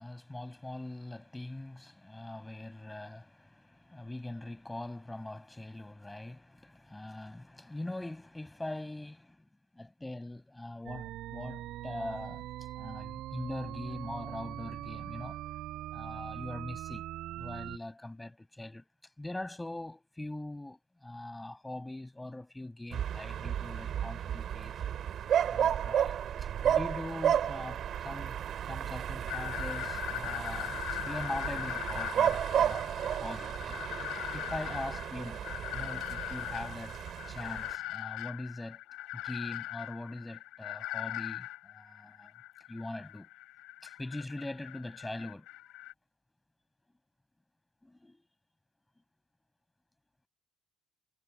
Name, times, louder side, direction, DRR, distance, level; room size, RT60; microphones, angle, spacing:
voice 1, 0.0-9.4 9.8-12.5 12.8-15.4 15.9-17.1 17.3-18.8 19.2-24.8 25.4-28.4 28.7-30.8 31.0-33.8 34.3-35.4 35.7-37.0 37.3-38.8 39.1-42.3 42.7-43.3 43.8-45.5 47.8-48.2, left 1 dB, 10° left, 5.6 m, -42 dB
sound 1, 10.9-17.8, right 14 dB, 75° right, 4.9 m, -42 dB
sound 2, 22.9-37.7, right 9 dB, 50° right, 7.0 m, -33 dB
sound 3, 29.3-45.9, left 16 dB, 85° left, 6.6 m, -41 dB
cardioid pair, 145°, 0 cm